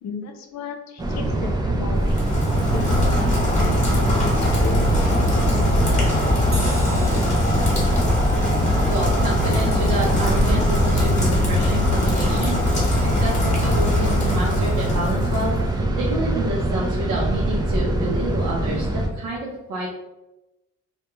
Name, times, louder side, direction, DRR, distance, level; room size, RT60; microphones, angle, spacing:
voice 1, 0.0-2.2 2.7-6.0, left 3 dB, 65° left, 4 dB, 0.5 m, -35 dB
sound 1, 1.0-19.1, right 1 dB, 15° right, 0.4 m, -23 dB
Rain, 2.0-15.8, left 2 dB, 25° left, 1.0 m, -23 dB
sound 2, 6.5-11.4, right 1 dB, 30° right, 0.8 m, -41 dB
voice 2, 8.9-19.9, right 1 dB, 80° right, -5 dB, 0.6 m, -28 dB
2.2 x 2.2 x 3.0 m, 0.97 s
cardioid pair, 90°, 30 cm